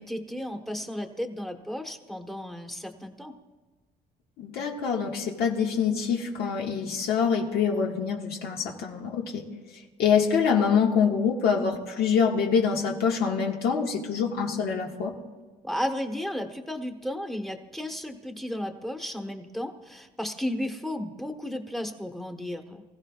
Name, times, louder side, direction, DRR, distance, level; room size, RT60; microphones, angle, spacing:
voice 1, 0.0-3.3 15.6-22.8, left 1 dB, ahead, 5 dB, 1.3 m, -34 dB
voice 2, 4.4-9.4 10.0-15.2, left 6 dB, 70° left, -1 dB, 1.8 m, -25 dB
24.5 x 15.5 x 2.5 m, 1.3 s
cardioid pair, 110°, 17 cm